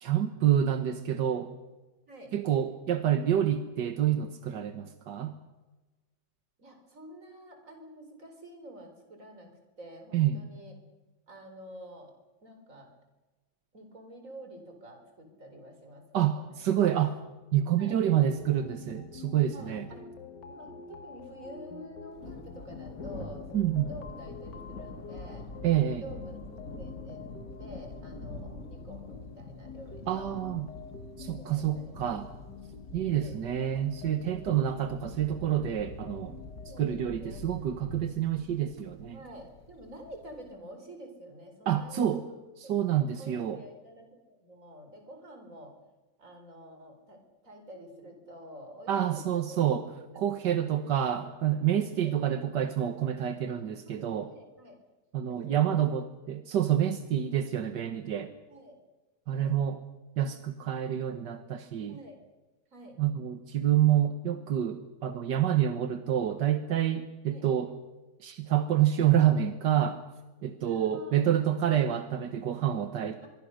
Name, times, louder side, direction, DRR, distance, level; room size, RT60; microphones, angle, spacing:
voice 1, 0.0-1.5 2.3-5.3 10.1-10.4 16.1-17.2 17.5-19.9 23.5-23.9 25.6-26.0 30.1-30.7 31.2-32.3 32.9-36.4 36.8-39.2 41.7-42.2 42.6-43.6 48.9-49.9 50.2-54.3 55.1-58.3 59.3-59.8 60.2-62.0 63.0-67.7 68.2-70.0 70.4-73.3, right 10 dB, 85° right, 9 dB, 1.8 m, -28 dB
voice 2, 6.6-9.5 9.8-10.7 11.3-12.1 12.4-12.9 13.7-16.7 17.8-18.0 19.5-23.4 23.9-25.5 26.0-27.2 27.6-30.4 31.4-31.9 33.1-33.4 36.7-37.5 39.1-45.7 46.2-49.6 49.9-50.3 50.6-50.8 51.9-52.4 53.5-54.8 55.3-55.8 58.5-58.8 59.3-59.6 61.9-62.2 62.7-63.0 67.3-67.5 70.6-71.5 73.2-73.3, equal, 50° right, 5 dB, 4.8 m, -48 dB
sound 1, 18.1-37.0, left 5 dB, 90° left, 2.2 m, -48 dB
Thunder, 22.1-40.5, left 2 dB, 55° left, 2.6 m, -45 dB
25.0 x 23.5 x 6.5 m, 1.2 s
omnidirectional pair, 1.8 m